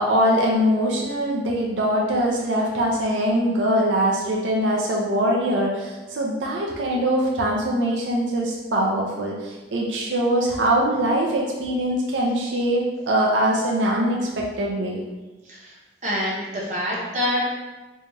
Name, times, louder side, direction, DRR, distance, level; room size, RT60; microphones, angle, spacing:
voice 1, 0.0-15.0, equal, 90° right, -3 dB, 0.5 m, -22 dB
voice 2, 15.4-15.8 16.0-17.5, left 1 dB, 40° right, -5 dB, 0.9 m, -26 dB
4.1 x 2.3 x 3.1 m, 1.2 s
head